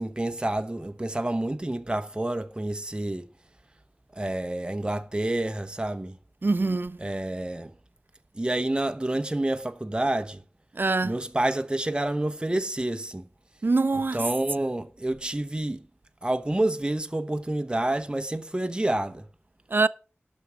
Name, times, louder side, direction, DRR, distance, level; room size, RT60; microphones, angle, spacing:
voice 1, 0.0-3.2 4.2-6.2 7.0-7.7 8.3-10.4 11.0-13.3 14.1-15.8 16.2-19.2, right 1 dB, 20° right, 0.9 m, -28 dB
voice 2, 6.4-7.0 10.8-11.2 13.6-14.2 19.7-19.9, right 3 dB, 55° right, 0.5 m, -24 dB
11.5 x 6.2 x 5.9 m
wide cardioid pair, 65°, 4 cm